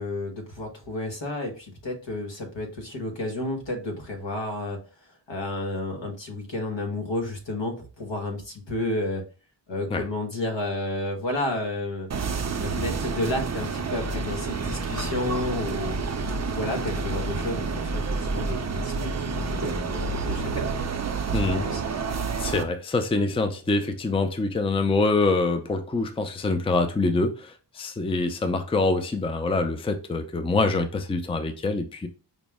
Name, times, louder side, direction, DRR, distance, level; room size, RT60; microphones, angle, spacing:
voice 1, 0.0-4.8 5.3-9.2 9.7-12.1 12.6-17.7 17.9-20.6 21.3-21.4 21.7-21.8, left 2 dB, 80° left, 1.3 m, -31 dB
sound 1, 12.1-22.6, right 4 dB, 40° right, 0.5 m, -29 dB
voice 2, 21.3-21.7 22.4-32.1, left 3 dB, 15° left, 0.4 m, -25 dB
5.1 x 2.0 x 3.4 m
wide cardioid pair, 80°, 44 cm